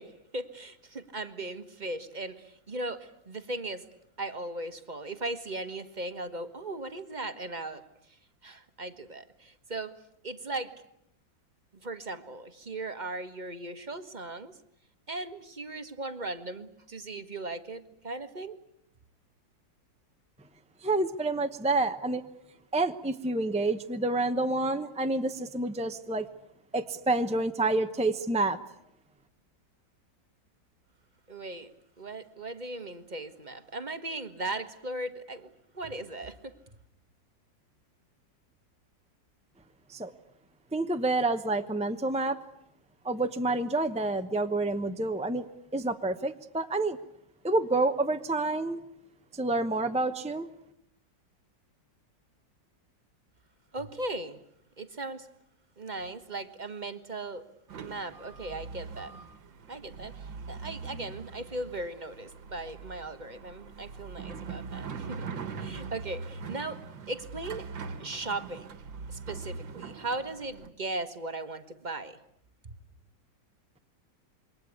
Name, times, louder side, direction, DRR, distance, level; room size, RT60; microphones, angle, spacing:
voice 1, 0.0-3.9 4.2-8.2 8.4-9.9 10.2-10.7 11.8-14.6 15.1-18.6 31.3-31.7 32.0-35.5 35.7-36.6 53.7-54.4 54.8-55.3 55.8-57.4 57.7-59.2 59.7-65.2 65.6-66.8 67.1-67.7 68.0-68.7 69.1-72.2 72.6-72.7, right 2 dB, 25° right, 10 dB, 1.3 m, -38 dB
voice 2, 20.8-22.3 22.7-26.3 26.7-28.6 39.9-40.1 40.7-42.4 43.0-47.0 47.4-48.8 49.3-50.5, right 2 dB, 10° right, 7 dB, 0.4 m, -28 dB
sound 1, 57.7-70.7, right 5 dB, 80° right, 2.1 m, -42 dB
27.5 x 23.0 x 8.5 m, 0.74 s
omnidirectional pair, 2.0 m